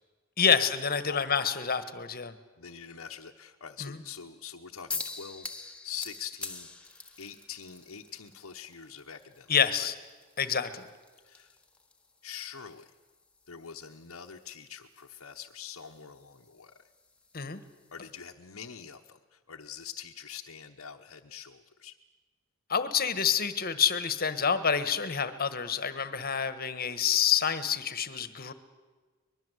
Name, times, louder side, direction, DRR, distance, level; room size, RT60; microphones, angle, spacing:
voice 1, 0.4-2.3 3.8-4.0 9.5-9.9 10.4-10.8 17.3-17.6 22.7-28.5, left 7 dB, 45° left, 12 dB, 1.4 m, -27 dB
voice 2, 2.6-6.9 7.2-9.5 9.8-9.9 11.2-11.6 12.2-12.9 13.5-16.7 17.9-21.9, left 7 dB, 80° left, 1 dB, 1.1 m, -44 dB
sound 1, 4.9-18.2, left 3 dB, 5° left, 1.6 m, -46 dB
24.0 x 21.5 x 8.0 m, 1.4 s
head